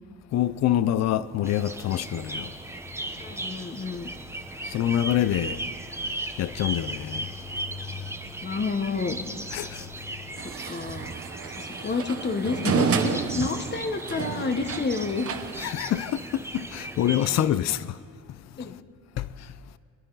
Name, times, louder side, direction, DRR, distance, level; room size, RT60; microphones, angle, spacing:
voice 1, 0.3-2.6 4.6-5.6 6.4-7.3 7.8-8.1 9.5-10.1 15.6-18.0 18.3-18.7 19.2-19.5, left 11 dB, 60° left, 0.5 m, -27 dB
sound 1, 1.4-17.5, right 2 dB, 10° right, 1.0 m, -37 dB
voice 2, 3.2-4.1 8.4-9.2 10.7-11.1 11.6-15.3 17.0-17.4 18.6-18.7, left 4 dB, 35° left, 1.2 m, -29 dB
garbage removal using special truck, 10.4-15.7, right 7 dB, 50° right, 1.0 m, -31 dB
25.5 x 10.5 x 4.0 m
cardioid pair, 90°, 30 cm